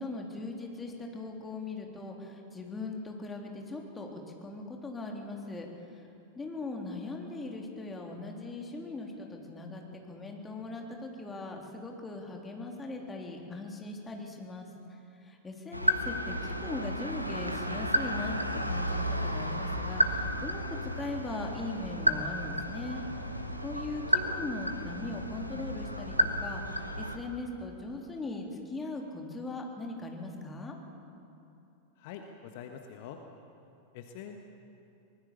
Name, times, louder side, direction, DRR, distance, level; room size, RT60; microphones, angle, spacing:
voice 1, 0.0-5.7 5.9-6.0 6.4-14.7 15.2-23.0 23.6-30.8, left 2 dB, 15° left, 1 dB, 3.4 m, -40 dB
sound 1, 15.7-27.2, equal, 90° right, 1.4 m, -32 dB
voice 2, 32.0-33.2 33.9-34.4, left 8 dB, 50° left, 4 dB, 1.5 m, -44 dB
24.5 x 20.0 x 7.2 m, 2.9 s
figure-of-eight pair, 90°, 0 cm